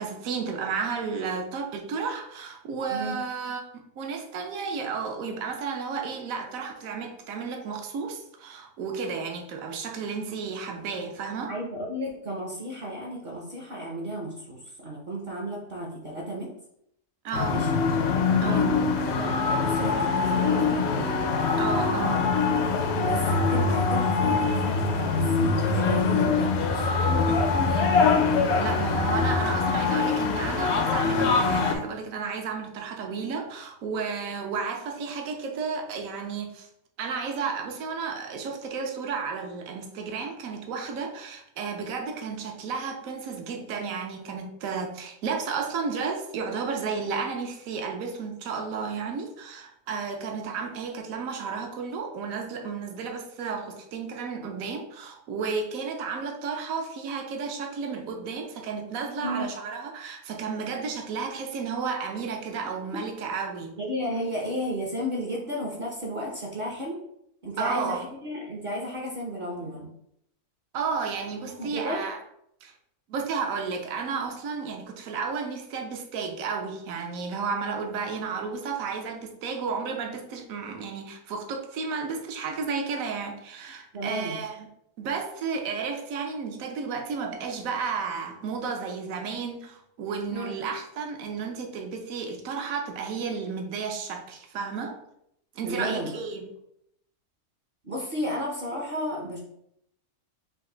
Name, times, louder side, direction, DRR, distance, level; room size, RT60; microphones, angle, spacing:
voice 1, 0.0-3.6 4.0-11.5 17.2-17.6 18.4-18.8 21.6-22.3 27.3-27.9 28.6-36.7 37.0-63.8 67.6-68.0 70.7-72.2 72.6-72.7 73.1-84.7 85.0-95.0 95.5-96.5, right 5 dB, 65° right, 3 dB, 1.1 m, -32 dB
voice 2, 11.5-16.5 17.5-17.7 18.3-21.2 23.0-26.6 59.2-59.5 62.9-63.0 63.8-67.0 67.4-69.9 71.4-72.1 83.9-84.4 90.3-90.6 95.6-96.1 97.8-99.4, equal, 45° right, -2 dB, 0.8 m, -33 dB
sound 1, 17.3-31.7, left 4 dB, 60° left, 0.7 m, -23 dB
5.3 x 2.5 x 3.8 m, 0.76 s
omnidirectional pair, 1.6 m